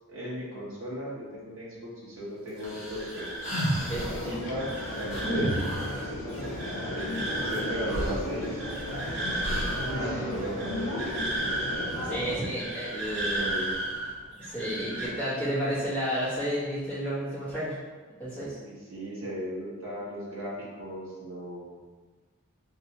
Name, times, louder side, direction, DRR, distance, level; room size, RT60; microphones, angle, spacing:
voice 1, 0.1-3.5 4.1-4.7 5.0-5.6 6.0-6.5 7.0-7.1 7.4-8.6 10.1-11.1 13.3-13.8 18.6-20.5 20.8-21.9, equal, 70° right, -8 dB, 0.9 m, -37 dB
sound 1, 2.6-4.2 5.1-6.0 7.5-7.6 7.9-8.9 9.4-9.9, right 1 dB, 35° left, 1.1 m, -31 dB
sound 2, 2.6-15.1, right 1 dB, 55° right, 0.5 m, -35 dB
sound 3, 3.9-12.4, left 1 dB, 80° left, 0.6 m, -35 dB
voice 2, 12.0-13.5 14.4-17.8 18.2-18.6, equal, 5° left, -12 dB, 1.3 m, -31 dB
3.2 x 2.9 x 2.9 m, 1.4 s
head